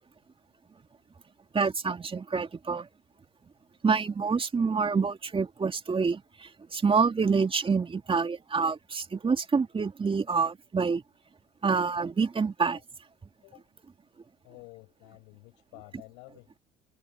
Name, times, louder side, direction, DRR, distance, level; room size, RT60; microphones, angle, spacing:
voice 1, 1.5-2.9 3.8-11.0 11.6-12.8, right 5 dB, 25° right, 2.3 m, -27 dB
voice 2, 14.4-16.6, left 35 dB, 80° left, 5.0 m, -51 dB
hypercardioid pair, 70°, 20 cm